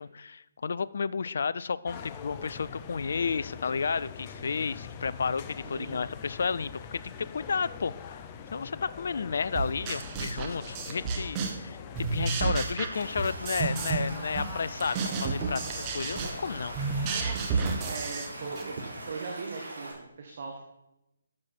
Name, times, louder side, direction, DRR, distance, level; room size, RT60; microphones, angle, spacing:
voice 1, 0.0-8.2 8.5-16.7, left 5 dB, 55° left, 18 dB, 0.4 m, -32 dB
sound 1, 1.9-19.2, left 7 dB, 25° left, 0.7 m, -44 dB
voice 2, 5.6-6.0 17.8-18.7 19.0-20.6, right 4 dB, 45° right, 1 dB, 1.4 m, -39 dB
sound 2, 9.6-11.7 11.9-14.1 14.4-18.7, right 5 dB, 25° right, 1.3 m, -31 dB
Stream / Liquid, 12.9-19.9, right 1 dB, 70° right, 3.7 m, -42 dB
12.5 x 7.4 x 4.3 m, 0.90 s
figure-of-eight pair, 140°, 0 cm